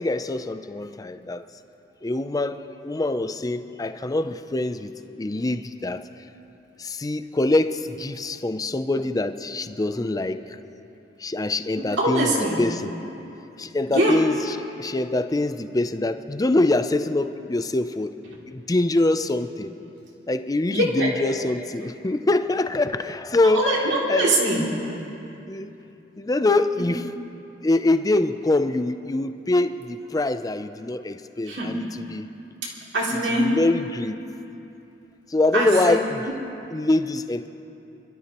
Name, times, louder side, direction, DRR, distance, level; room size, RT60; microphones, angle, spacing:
voice 1, 0.0-1.4 2.0-4.9 5.2-6.0 6.8-10.4 11.2-12.3 12.6-12.9 13.6-18.1 18.5-19.7 20.3-23.7 24.1-24.3 25.5-25.7 26.2-27.0 27.6-32.3 33.3-34.2 35.3-36.2 36.7-37.5, left 2 dB, 20° left, 10 dB, 0.4 m, -24 dB
voice 2, 11.8-12.6 13.9-14.2 20.7-21.1 23.4-24.6 31.5-31.8 32.9-33.5 35.5-35.9 36.3-36.4, right 1 dB, 75° right, -4 dB, 2.7 m, -23 dB
30.0 x 12.5 x 3.0 m, 2.8 s
head